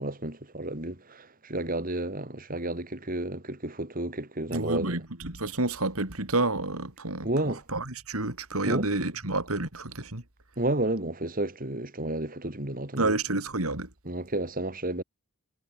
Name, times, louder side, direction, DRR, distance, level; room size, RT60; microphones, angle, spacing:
voice 1, 0.0-5.0 7.2-7.6 8.7-8.9 10.6-13.1 14.1-15.0, right 1 dB, 40° right, 3.9 m, -31 dB
voice 2, 4.5-10.2 13.0-13.9, right 2 dB, 80° right, 4.1 m, -29 dB
head